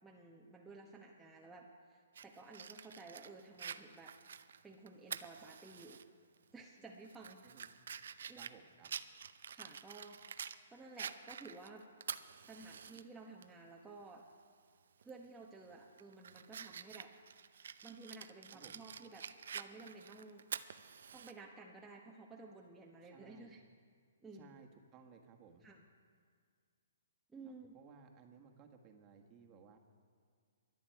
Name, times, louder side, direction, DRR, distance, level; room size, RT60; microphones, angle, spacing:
voice 1, 0.0-4.1 4.6-6.0 6.5-7.4 8.3-8.5 9.5-10.2 10.7-11.8 12.5-14.2 15.0-17.1 17.8-19.3 19.5-20.5 21.1-23.6 24.2-24.6 25.6-25.9 27.3-27.8, right 3 dB, 10° right, -2 dB, 1.1 m, -54 dB
Fire, 2.1-6.0 6.4-6.5 7.0-10.6 11.0-13.0 13.4-13.5 15.0-15.3 15.7-21.3, right 7 dB, 65° right, 0.6 m, -48 dB
voice 2, 7.4-7.7 8.3-8.9 18.5-18.8 23.0-23.5 24.3-25.6 27.4-29.8, right 6 dB, 25° right, 3 dB, 1.6 m, -60 dB
23.0 x 9.5 x 4.7 m, 2.1 s
hypercardioid pair, 135°, 0 cm